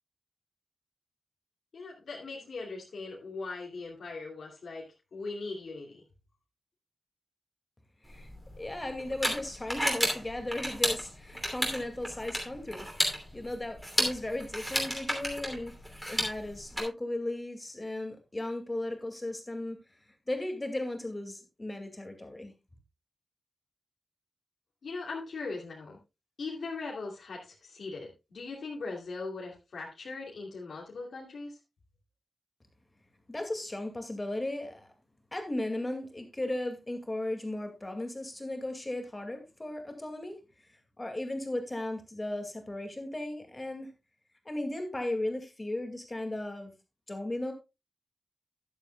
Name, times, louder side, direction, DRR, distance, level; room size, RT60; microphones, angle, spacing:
voice 1, 1.7-6.0 24.8-26.0 26.4-31.6, left 3 dB, 90° left, 2.8 m, -40 dB
sound 1, 8.1-16.8, equal, 5° right, 2.8 m, -33 dB
voice 2, 8.6-12.9 13.3-15.7 16.0-19.8 20.3-22.5 33.3-34.9 35.3-40.4 41.0-43.9 44.5-46.7 47.1-47.5, left 1 dB, 15° left, 2.2 m, -36 dB
12.5 x 11.0 x 2.3 m
wide cardioid pair, 175°, 0 cm